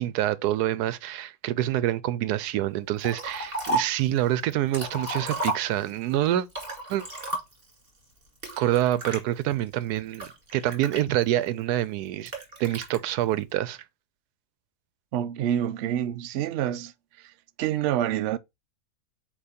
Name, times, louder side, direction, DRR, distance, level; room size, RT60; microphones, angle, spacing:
voice 1, 0.0-6.5 6.9-7.0 8.6-12.3 12.6-13.8, right 13 dB, 85° right, 1.1 m, -26 dB
Liquid, 3.0-4.0 4.5-6.0 6.5-7.7 8.4-9.2 9.8-11.5 12.3-13.0, right 1 dB, 35° right, 2.4 m, -32 dB
voice 2, 15.1-16.9 17.2-17.3 17.6-18.4, right 11 dB, 65° right, 0.7 m, -27 dB
8.4 x 2.8 x 4.2 m
omnidirectional pair, 1.6 m